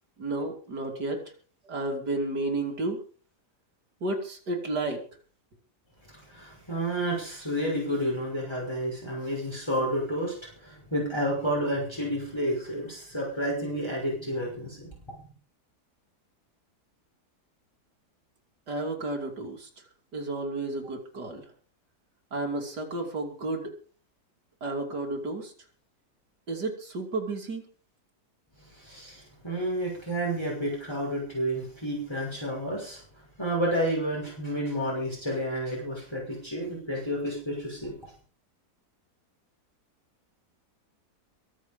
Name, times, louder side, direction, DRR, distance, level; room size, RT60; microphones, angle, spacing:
voice 1, 0.2-1.2 1.7-3.0 4.0-5.0 18.7-19.7 20.1-21.5 22.3-23.7 24.6-25.5 26.5-27.7, right 2 dB, 85° right, 2 dB, 3.5 m, -32 dB
voice 2, 6.3-10.3 10.6-14.9 28.8-33.0 33.4-37.9, equal, 15° left, -4 dB, 6.2 m, -30 dB
23.5 x 7.9 x 5.4 m, 0.42 s
omnidirectional pair, 1.7 m